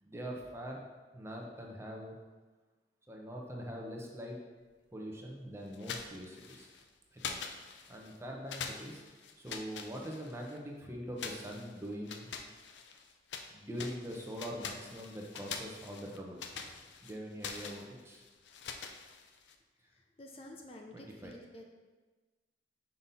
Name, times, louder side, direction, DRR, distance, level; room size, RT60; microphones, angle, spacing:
voice 1, 0.1-0.8 1.1-2.2 3.1-4.4 4.9-6.7 7.1-7.4 7.9-9.0 9.4-12.3 13.5-16.5 17.0-18.3 20.9-21.3, equal, 15° right, -1 dB, 0.9 m, -43 dB
sound 1, 5.7-6.8 7.2-8.2 8.5-10.6 11.2-13.5 13.8-19.5, left 5 dB, 85° left, 0.5 m, -45 dB
voice 2, 19.7-21.7, left 1 dB, 35° left, 1 dB, 0.6 m, -51 dB
5.8 x 5.5 x 4.1 m, 1.3 s
head